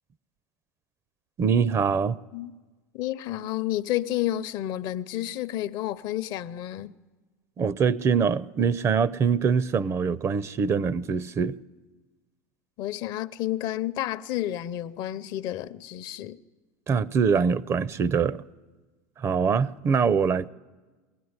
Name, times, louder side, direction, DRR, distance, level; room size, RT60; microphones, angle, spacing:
voice 1, 1.4-2.2 7.6-11.6 16.9-18.4 19.2-20.5, right 6 dB, 35° right, 0.6 m, -23 dB
voice 2, 2.9-6.9 12.8-16.4, left 13 dB, 55° left, 0.7 m, -30 dB
21.5 x 16.0 x 9.6 m
supercardioid pair, 100°, 8 cm